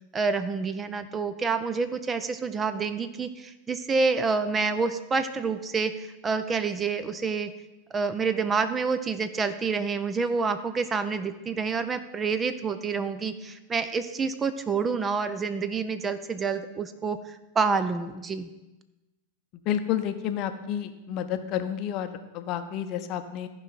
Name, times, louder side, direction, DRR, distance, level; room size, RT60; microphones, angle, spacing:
voice 1, 0.1-7.5 7.9-18.5, right 4 dB, 20° right, 11 dB, 0.5 m, -28 dB
voice 2, 19.6-23.5, left 10 dB, 40° left, 9 dB, 0.7 m, -30 dB
14.5 x 4.9 x 4.2 m, 1.0 s
figure-of-eight pair, 90°, 0 cm